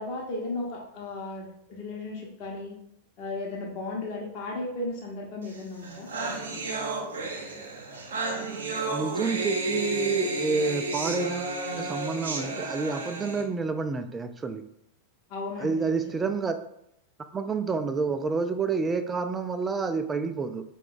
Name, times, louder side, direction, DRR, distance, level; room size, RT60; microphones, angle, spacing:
voice 1, 0.0-2.8 3.2-6.1 15.3-16.0, left 2 dB, 40° left, -2 dB, 0.8 m, -35 dB
sound 1, 5.5-5.6 5.8-13.4, right 2 dB, 65° right, 0.7 m, -32 dB
voice 2, 8.9-14.6 15.6-16.5 17.3-20.6, right 4 dB, 15° right, 9 dB, 0.3 m, -29 dB
4.9 x 2.3 x 3.7 m, 0.78 s
figure-of-eight pair, 90°, 0 cm